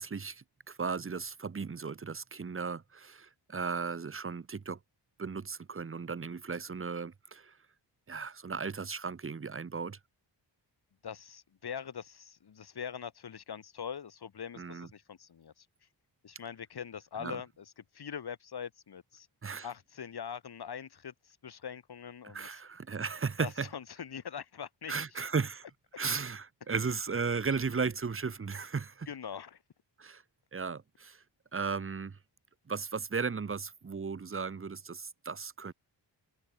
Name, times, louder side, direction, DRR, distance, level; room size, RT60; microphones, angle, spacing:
voice 1, 0.0-4.8 5.2-7.6 8.1-10.0 14.6-14.9 17.2-17.4 19.4-19.7 22.2-23.7 24.9-25.6 26.0-29.1 30.0-30.2 30.5-31.2 31.5-32.2 32.7-35.7, right 5 dB, 30° right, 1.1 m, -36 dB
voice 2, 11.0-15.7 16.2-19.3 19.6-22.6 23.4-25.2 26.1-26.2 29.1-29.6, left 7 dB, 60° left, 2.5 m, -43 dB
wide cardioid pair, 150°, 44 cm